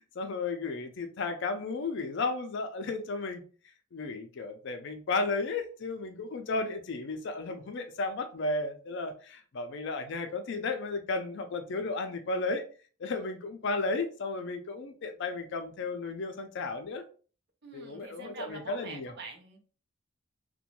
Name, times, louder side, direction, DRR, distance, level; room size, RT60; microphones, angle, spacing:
voice 1, 0.0-3.4 3.9-12.6 13.0-17.0 17.7-19.1, left 3 dB, 60° left, 0.4 m, -34 dB
voice 2, 17.6-19.6, right 3 dB, 55° right, 0.6 m, -45 dB
2.5 x 2.2 x 2.9 m
head